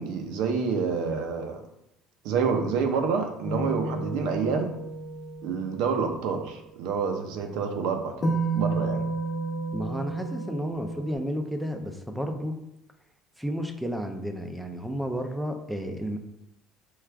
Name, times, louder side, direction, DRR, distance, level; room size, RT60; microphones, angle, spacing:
voice 1, 0.0-1.6 2.2-4.7 5.4-9.0, right 5 dB, 75° right, 5 dB, 0.6 m, -28 dB
sound 1, 3.4-5.8 8.2-11.1, right 2 dB, 20° left, 0.8 m, -31 dB
voice 2, 9.7-12.6 13.4-16.2, equal, 5° right, 5 dB, 0.4 m, -32 dB
4.7 x 2.3 x 3.3 m, 0.83 s
cardioid pair, 150°, 0 cm